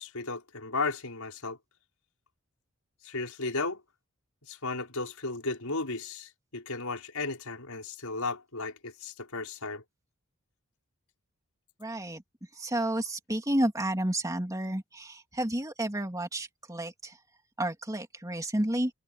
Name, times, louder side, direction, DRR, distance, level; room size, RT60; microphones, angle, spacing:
voice 1, 0.0-1.6 3.0-3.8 4.4-9.8, left 3 dB, 85° left, 5.5 m, -35 dB
voice 2, 11.8-12.2 12.6-17.1 17.6-18.9, right 1 dB, 15° right, 2.8 m, -31 dB
head